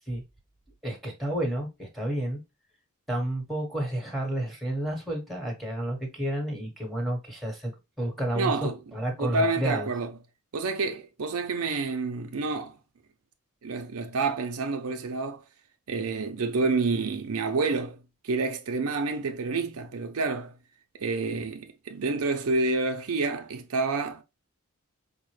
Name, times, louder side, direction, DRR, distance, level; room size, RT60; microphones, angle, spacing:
voice 1, 0.8-2.4 3.1-7.7 8.0-9.9, right 1 dB, ahead, 1.2 m, -31 dB
voice 2, 8.3-8.8 9.2-10.1 10.5-12.8 13.6-15.4 15.9-20.6 21.0-24.2, right 3 dB, 70° right, 0.6 m, -28 dB
4.9 x 2.1 x 3.1 m
head